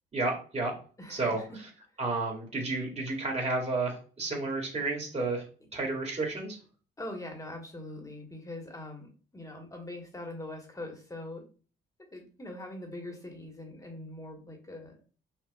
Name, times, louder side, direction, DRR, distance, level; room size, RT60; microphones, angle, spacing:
voice 1, 0.1-0.7 1.1-1.4 2.0-5.4 5.7-6.6, right 3 dB, 35° right, 0 dB, 1.6 m, -31 dB
voice 2, 1.0-1.6 7.0-11.5 12.1-14.9, left 1 dB, 15° left, 2 dB, 1.2 m, -42 dB
5.8 x 2.4 x 2.2 m, 0.38 s
cardioid pair, 90°, 20 cm